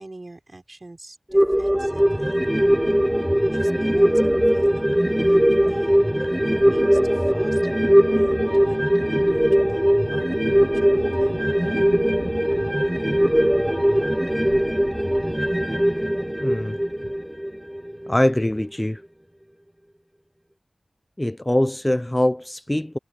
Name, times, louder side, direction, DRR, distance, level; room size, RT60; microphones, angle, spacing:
voice 1, 0.0-2.4 3.5-6.0 6.7-8.9 9.2-11.8, right 2 dB, 45° right, 4.3 m, -42 dB
sound 1, 1.3-18.1 18.5-18.6, equal, 10° right, 0.3 m, -20 dB
voice 2, 16.4-16.8 18.1-19.0 21.2-23.0, left 1 dB, 20° left, 0.7 m, -22 dB
cardioid pair, 45°, 0 cm